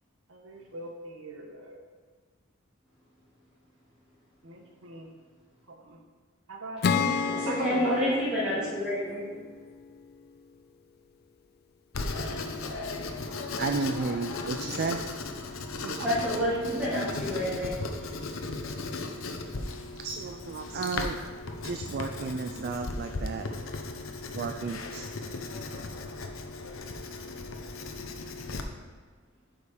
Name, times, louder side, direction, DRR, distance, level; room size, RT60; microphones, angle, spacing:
voice 1, 0.3-1.8 4.4-5.1 5.7-6.0 6.5-6.9 7.2-8.7, right 2 dB, 75° right, 1 dB, 1.2 m, -39 dB
Acoustic guitar / Strum, 6.8-10.3, left 5 dB, 50° left, 0.4 m, -31 dB
voice 2, 7.0-9.3 16.0-17.7, equal, 5° right, -13 dB, 2.1 m, -29 dB
Writing, 11.9-28.6, left 3 dB, 80° left, 0.8 m, -36 dB
voice 3, 13.6-15.0 15.8-16.1 20.0-21.2 21.6-23.5 24.3-25.1, right 4 dB, 50° right, 5 dB, 0.4 m, -33 dB
8.2 x 5.2 x 5.0 m, 1.5 s
head